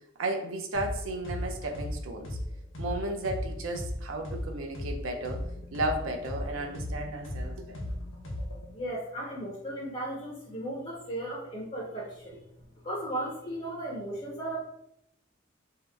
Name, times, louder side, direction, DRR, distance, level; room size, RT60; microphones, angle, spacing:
voice 1, 0.2-2.4 2.8-5.5 5.7-8.0, right 1 dB, 80° right, 3 dB, 0.5 m, -34 dB
sound 1, 0.7-0.9 1.2-4.9 5.2-8.7, left 1 dB, 65° left, 0.8 m, -36 dB
voice 2, 8.7-12.4 12.8-14.6, right 1 dB, 30° left, -3 dB, 0.5 m, -36 dB
2.7 x 2.0 x 3.4 m, 0.80 s
head